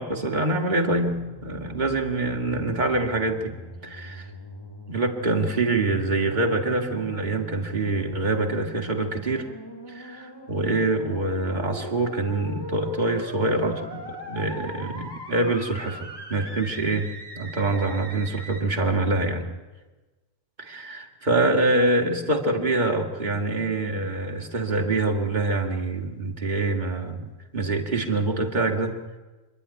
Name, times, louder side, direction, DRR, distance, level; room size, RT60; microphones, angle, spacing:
voice 1, 0.0-3.5 3.8-4.3 4.9-9.5 9.9-19.5 20.6-28.9, right 2 dB, 35° right, 2 dB, 2.3 m, -25 dB
sound 1, 1.1-18.6, equal, 15° left, 2.7 m, -41 dB
26.5 x 11.0 x 10.0 m, 1.2 s
omnidirectional pair, 1.4 m